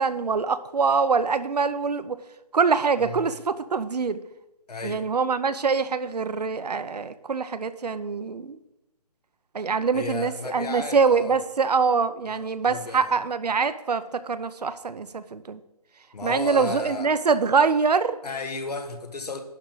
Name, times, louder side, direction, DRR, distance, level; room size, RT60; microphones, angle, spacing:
voice 1, 0.0-2.2 2.5-4.2 4.8-8.6 9.5-15.6 16.2-18.2, right 5 dB, 85° right, 12 dB, 0.7 m, -24 dB
voice 2, 4.7-5.1 9.9-11.4 12.3-13.1 16.1-17.1 18.2-19.4, left 3 dB, 80° left, 6 dB, 1.6 m, -34 dB
11.0 x 3.8 x 7.2 m, 0.93 s
hypercardioid pair, 160°, 20 cm